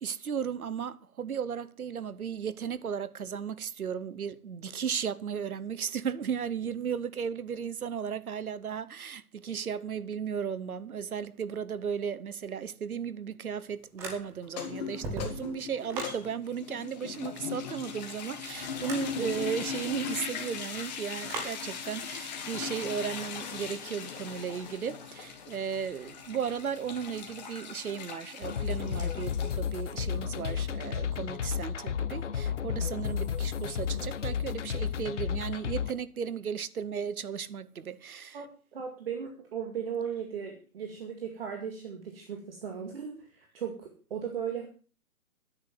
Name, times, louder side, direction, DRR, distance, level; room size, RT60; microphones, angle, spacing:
voice 1, 0.0-38.4, right 7 dB, 75° right, 1.0 m, -35 dB
sound 1, 14.0-14.6 14.9-16.2 18.8-19.1 21.3-21.6, right 2 dB, 5° right, 0.8 m, -38 dB
sound 2, 14.4-29.5, left 7 dB, 30° left, 2.0 m, -39 dB
sound 3, 28.4-35.9, left 8 dB, 55° left, 0.7 m, -32 dB
voice 2, 38.3-44.7, right 7 dB, 40° right, 2.2 m, -37 dB
10.0 x 8.2 x 7.8 m
hypercardioid pair, 155°, 43 cm